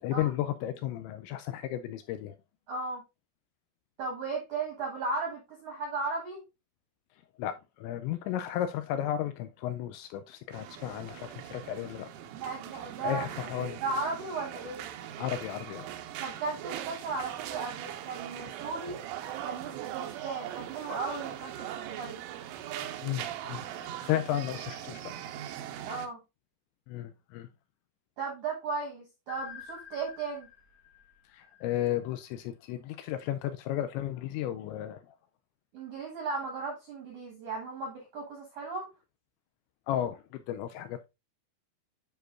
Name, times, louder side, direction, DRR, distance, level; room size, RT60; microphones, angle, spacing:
voice 1, 0.0-2.4 7.4-12.1 13.0-13.8 15.2-15.9 23.0-23.7 24.0-25.1 26.9-27.5 31.3-35.2 39.9-41.1, left 12 dB, 85° left, 2.6 m, -34 dB
voice 2, 2.7-3.0 4.0-6.4 12.3-13.3 13.8-14.8 16.2-19.0 19.4-22.2 25.8-26.2 28.2-30.5 35.7-38.9, right 3 dB, 65° right, 1.9 m, -36 dB
sound 1, 10.5-26.1, right 11 dB, 85° right, 3.3 m, -40 dB
sound 2, 29.3-32.2, left 8 dB, 55° left, 1.9 m, -48 dB
10.5 x 4.9 x 2.5 m
omnidirectional pair, 5.7 m